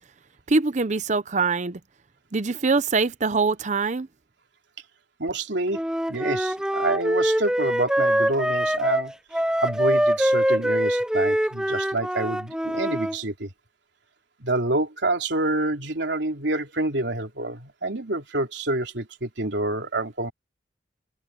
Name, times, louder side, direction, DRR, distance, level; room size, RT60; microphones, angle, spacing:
voice 1, 0.5-1.8 2.3-4.1, right 4 dB, 45° right, 0.7 m, -23 dB
voice 2, 5.2-5.8 6.1-9.1 9.6-13.5 14.4-20.3, right 2 dB, 85° right, 3.0 m, -27 dB
Wind instrument woodwind instrument, 5.7-13.2, equal, 5° right, 0.7 m, -24 dB
head